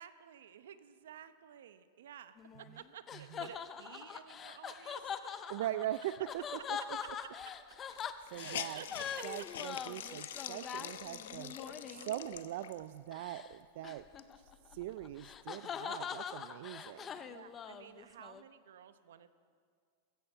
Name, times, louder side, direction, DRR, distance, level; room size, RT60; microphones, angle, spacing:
voice 1, 0.0-2.3 2.7-5.6 7.0-7.3 8.3-8.9 9.4-9.5 11.7-12.1 17.2-19.3, right 9 dB, 90° right, 12 dB, 0.8 m, -53 dB
sound 1, 2.4-12.2 13.1-13.5 13.8-18.4, left 7 dB, 20° left, 0.5 m, -43 dB
voice 2, 3.1-3.5 5.5-7.0 8.3-8.8 9.2-14.0 14.7-17.1, right 13 dB, 55° right, 13 dB, 0.4 m, -41 dB
Hiss, 7.1-7.2 7.4-7.5 7.9-13.0 13.5-13.6 14.0-15.4, left 10 dB, 80° left, 0.7 m, -45 dB
15.5 x 14.0 x 5.6 m, 2.1 s
supercardioid pair, 165°, 0 cm